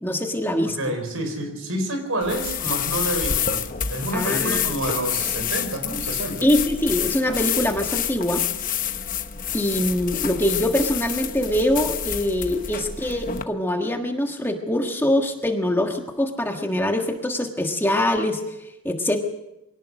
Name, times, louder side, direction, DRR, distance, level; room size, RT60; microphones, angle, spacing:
voice 1, 0.0-0.8 4.1-4.6 6.4-8.4 9.5-18.4 18.8-19.2, left 1 dB, 10° left, 3 dB, 1.5 m, -23 dB
voice 2, 0.7-6.5, right 1 dB, 80° right, 6 dB, 4.8 m, -28 dB
sound 1, 2.2-13.4, left 9 dB, 40° left, 0.9 m, -28 dB
23.0 x 17.5 x 6.4 m, 0.90 s
head